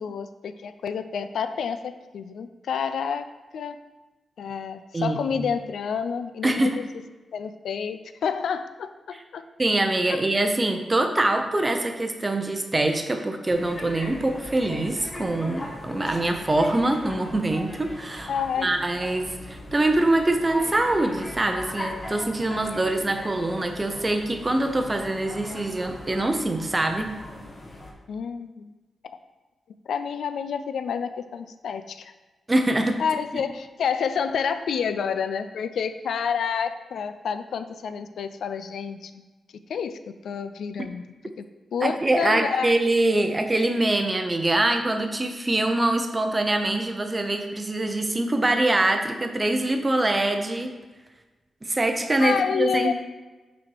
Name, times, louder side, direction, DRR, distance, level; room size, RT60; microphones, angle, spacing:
voice 1, 0.0-3.8 4.4-6.8 7.3-8.9 9.3-9.4 18.3-18.7 28.1-28.7 29.0-29.2 29.9-32.1 33.0-39.1 39.7-40.0 40.2-41.0 41.4-41.5 41.7-42.7 52.2-52.9, left 7 dB, 90° left, 10 dB, 0.3 m, -29 dB
voice 2, 4.9-5.5 6.4-6.8 9.6-18.3 18.6-27.2 32.5-33.0 33.3-33.4 41.8-50.7 51.6-52.9, right 2 dB, 20° right, 5 dB, 0.6 m, -24 dB
sound 1, 13.5-27.9, left 1 dB, 25° left, 1.0 m, -39 dB
5.9 x 4.2 x 4.6 m, 1.2 s
wide cardioid pair, 130°, 0 cm